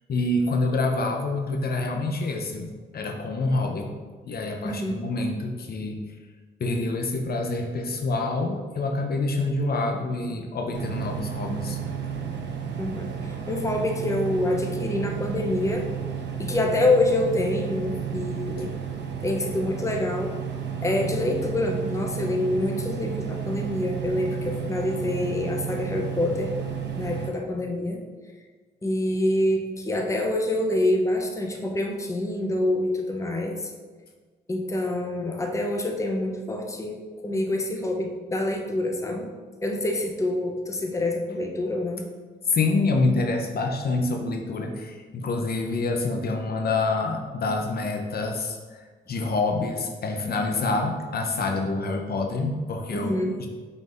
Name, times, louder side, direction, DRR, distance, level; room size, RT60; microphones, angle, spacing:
voice 1, 0.1-4.0 4.2-6.0 6.6-11.8 42.5-48.8 49.1-53.1 53.4-53.5, left 3 dB, 55° left, 3 dB, 0.6 m, -27 dB
voice 2, 4.6-5.0 12.8-15.9 16.3-18.8 19.2-20.4 20.8-26.5 27.0-28.0 28.8-33.7 34.5-39.3 39.6-42.0 52.9-53.3, left 1 dB, 15° left, 2 dB, 0.6 m, -26 dB
sound 1, 10.7-27.3, right 7 dB, 70° right, 0.6 m, -32 dB
5.3 x 4.0 x 2.5 m, 1.4 s
cardioid pair, 65°, 19 cm